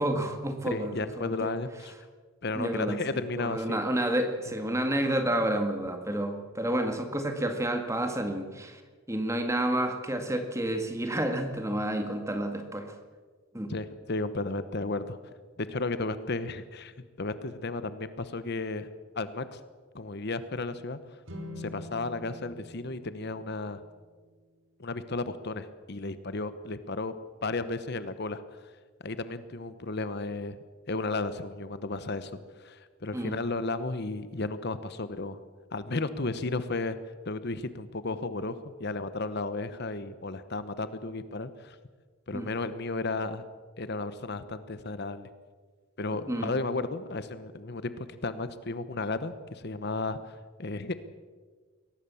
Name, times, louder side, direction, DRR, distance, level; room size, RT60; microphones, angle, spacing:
voice 1, 0.0-1.5 2.6-3.0 3.4-8.8 9.1-12.9 13.5-13.7 33.1-33.3 42.3-42.5 46.1-46.5, right 1 dB, 15° right, 6 dB, 2.0 m, -30 dB
voice 2, 0.7-1.9 2.4-3.8 13.7-15.2 15.6-18.9 19.2-19.6 19.9-21.0 21.6-23.8 24.8-27.1 27.4-28.4 29.0-30.6 30.9-32.3 32.6-35.4 35.7-37.0 37.3-41.8 42.3-43.4 43.8-45.3 46.0-50.9, left 3 dB, 50° left, 12 dB, 1.0 m, -33 dB
sound 1, 21.2-24.5, left 1 dB, 60° right, 3.5 m, -45 dB
22.5 x 18.5 x 7.1 m, 1.5 s
head